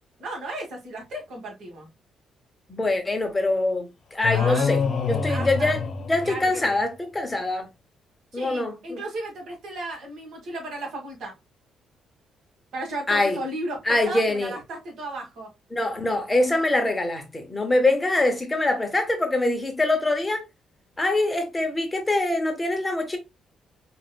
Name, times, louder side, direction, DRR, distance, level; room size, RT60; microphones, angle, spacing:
voice 1, 0.2-1.9 4.3-4.7 5.3-5.7 6.2-6.8 8.3-11.3 12.7-15.5, right 2 dB, 70° right, 1.6 m, -35 dB
voice 2, 2.7-4.8 5.1-7.7 8.3-9.0 13.1-13.4 13.9-14.5 15.7-20.4 21.0-23.2, left 2 dB, 15° left, 0.9 m, -24 dB
sound 1, 4.2-6.7, left 6 dB, 55° left, 1.1 m, -26 dB
4.4 x 2.4 x 2.2 m
cardioid pair, 90°, 0 cm